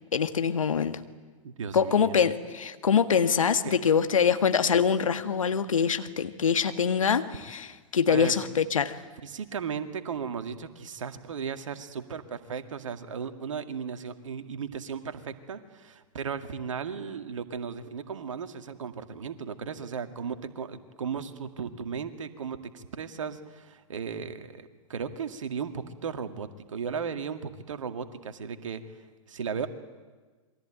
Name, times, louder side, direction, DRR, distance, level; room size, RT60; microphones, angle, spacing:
voice 1, 0.1-1.0 1.7-9.0, left 7 dB, 70° left, 10 dB, 1.6 m, -24 dB
voice 2, 1.4-2.2 3.6-3.8 8.1-8.4 9.2-29.7, right 6 dB, 65° right, 8 dB, 2.1 m, -36 dB
27.5 x 22.5 x 9.1 m, 1.4 s
figure-of-eight pair, 105°, 17 cm